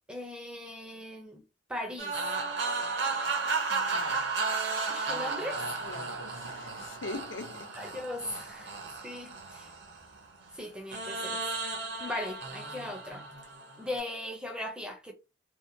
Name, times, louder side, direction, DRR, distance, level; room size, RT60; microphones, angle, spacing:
voice 1, 0.1-1.4 1.7-2.2 4.9-5.7 7.7-8.7 9.0-9.7 10.5-11.5 12.0-13.3 13.8-15.1, left 1 dB, 5° right, 0.4 m, -38 dB
sound 1, 2.0-10.3 10.9-14.0, right 4 dB, 60° right, 0.7 m, -34 dB
voice 2, 3.7-4.3 5.8-7.7, left 3 dB, 75° left, 0.5 m, -42 dB
2.8 x 2.1 x 2.5 m
head